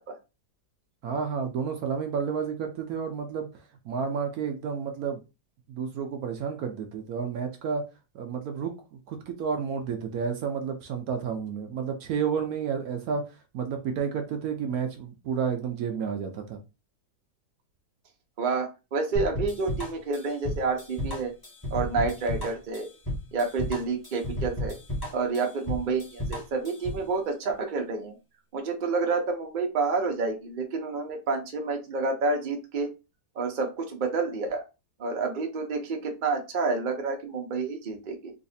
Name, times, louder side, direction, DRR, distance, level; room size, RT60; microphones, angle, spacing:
voice 1, 1.0-3.5 3.8-5.2 5.7-7.8 8.1-13.2 13.5-16.6, right 6 dB, 70° right, 5 dB, 0.9 m, -31 dB
voice 2, 18.4-21.3 21.7-22.9 23.3-24.7 25.1-28.2 28.5-32.9 33.4-34.6 35.0-38.3, right 4 dB, 55° right, 2 dB, 0.5 m, -29 dB
sound 1, 19.2-27.1, left 1 dB, 15° left, 0.9 m, -33 dB
3.9 x 2.5 x 2.7 m, 0.28 s
omnidirectional pair, 1.9 m